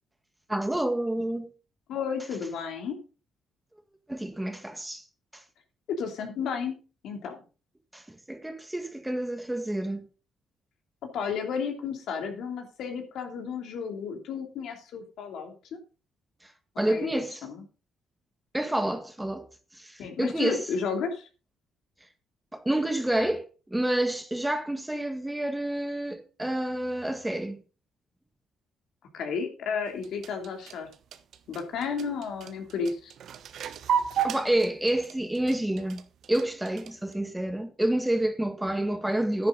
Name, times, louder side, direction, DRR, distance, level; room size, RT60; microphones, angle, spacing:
voice 1, 0.5-1.5 4.1-5.0 5.3-5.4 7.9-10.1 16.8-17.4 18.5-19.5 19.7-20.7 22.5-27.6 34.2-36.0 36.3-39.5, right 1 dB, 10° right, 1.8 m, -28 dB
voice 2, 1.9-3.0 5.9-6.8 7.0-7.4 11.1-15.5 16.8-17.6 20.0-21.3 29.1-30.9 31.5-33.1, left 6 dB, 80° left, 3.0 m, -32 dB
sound 1, 29.9-37.1, right 8 dB, 70° right, 1.1 m, -33 dB
10.5 x 10.0 x 3.9 m
cardioid pair, 90°, 0 cm